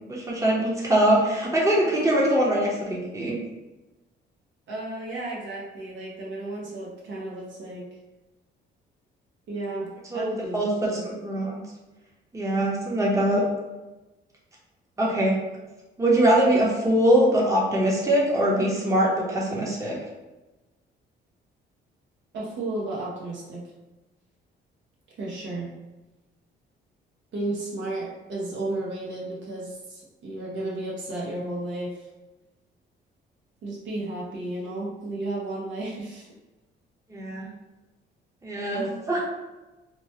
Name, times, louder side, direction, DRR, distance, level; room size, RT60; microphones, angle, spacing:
voice 1, 0.1-3.4 10.1-10.2 10.5-10.7 11.0-11.6 12.3-13.4 15.0-15.3 16.0-20.0 37.1-37.5 38.4-39.2, right 1 dB, 15° right, -4 dB, 0.8 m, -22 dB
voice 2, 4.7-7.8 9.5-10.6 10.8-11.0 22.3-23.6 25.2-25.7 27.3-32.1 33.6-36.3 38.7-39.0, right 2 dB, 70° right, -4 dB, 0.9 m, -33 dB
3.0 x 2.2 x 2.8 m, 1.1 s
cardioid pair, 90°, 20 cm